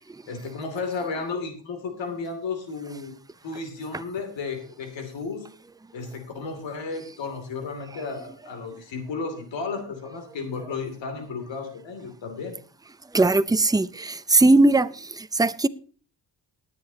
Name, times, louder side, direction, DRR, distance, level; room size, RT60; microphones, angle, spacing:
voice 1, 0.3-3.1 3.4-5.5 5.9-12.6, left 4 dB, 85° left, 2.8 m, -33 dB
voice 2, 13.1-14.9 15.2-15.7, right 2 dB, 10° right, 0.6 m, -19 dB
20.0 x 7.9 x 2.8 m
cardioid pair, 70°, 44 cm